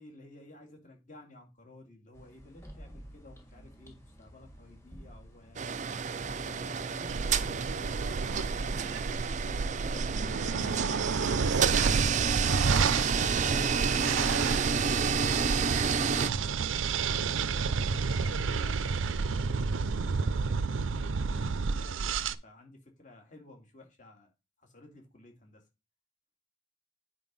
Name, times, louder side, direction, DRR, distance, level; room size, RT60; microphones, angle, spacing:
voice 1, 0.0-5.8 6.4-14.4 16.9-24.3 24.6-25.6, left 1 dB, 40° left, 3 dB, 2.6 m, -54 dB
sound 1, 2.1-7.4, equal, 15° left, 1.7 m, -52 dB
sound 2, 5.6-16.3, right 6 dB, 40° right, 0.5 m, -30 dB
sound 3, 7.1-22.3, right 4 dB, 85° right, 0.5 m, -30 dB
9.4 x 4.6 x 5.4 m, 0.28 s
head